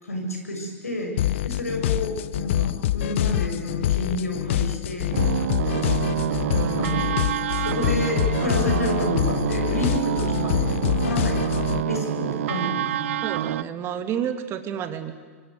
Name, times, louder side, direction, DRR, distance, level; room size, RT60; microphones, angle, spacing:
voice 1, 0.0-5.9 6.7-7.0 7.5-13.1, left 1 dB, 90° left, 2 dB, 7.1 m, -30 dB
sound 1, 1.2-11.8, left 13 dB, 60° left, 0.7 m, -25 dB
sound 2, 5.1-13.6, right 12 dB, 60° right, 0.9 m, -27 dB
voice 2, 6.5-7.0 13.2-15.1, right 9 dB, 30° right, 8 dB, 2.7 m, -30 dB
26.5 x 25.0 x 8.0 m, 1.5 s
hypercardioid pair, 105°, 8 cm